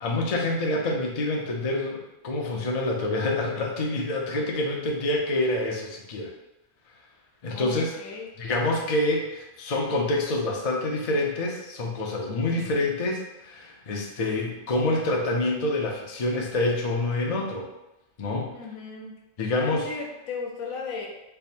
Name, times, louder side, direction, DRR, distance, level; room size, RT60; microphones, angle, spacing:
voice 1, 0.0-6.3 7.4-7.9 8.4-17.7 18.2-18.5 19.4-19.9, left 2 dB, 55° left, 0 dB, 0.4 m, -27 dB
voice 2, 7.5-8.3 18.5-19.1 19.6-21.1, left 5 dB, 80° left, 0 dB, 1.1 m, -36 dB
3.4 x 2.0 x 4.2 m, 0.97 s
omnidirectional pair, 1.4 m